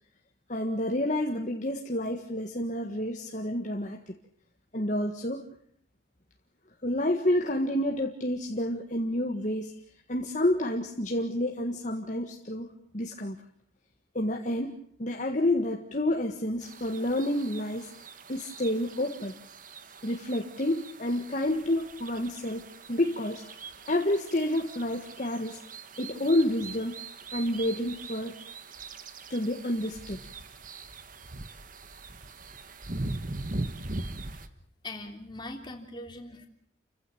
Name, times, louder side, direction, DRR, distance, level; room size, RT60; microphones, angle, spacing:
voice 1, 0.5-4.1 4.7-5.4 6.8-9.7 10.1-12.7 12.9-13.4 14.2-17.9 18.3-19.3 20.0-23.5 23.9-25.6 26.0-27.0 27.3-28.3 29.3-30.2, left 1 dB, 40° left, 2 dB, 1.7 m, -29 dB
sound 1, 16.6-34.5, right 2 dB, 40° right, 1.5 m, -41 dB
voice 2, 34.8-36.5, left 1 dB, 20° left, 4 dB, 3.3 m, -41 dB
30.0 x 15.5 x 8.7 m, 0.64 s
head